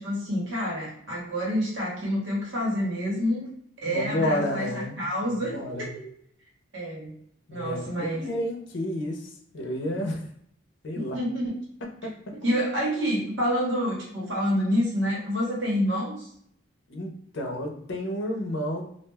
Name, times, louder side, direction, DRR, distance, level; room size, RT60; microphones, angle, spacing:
voice 1, 0.0-3.5 3.8-6.0 6.7-7.1 7.5-8.3 10.9-11.5 12.4-16.3, equal, 75° right, -4 dB, 1.3 m, -28 dB
voice 2, 3.9-5.9 7.5-10.2 10.8-11.2 12.0-12.1 16.9-18.8, equal, 70° left, 3 dB, 0.6 m, -31 dB
2.4 x 2.2 x 3.3 m, 0.68 s
head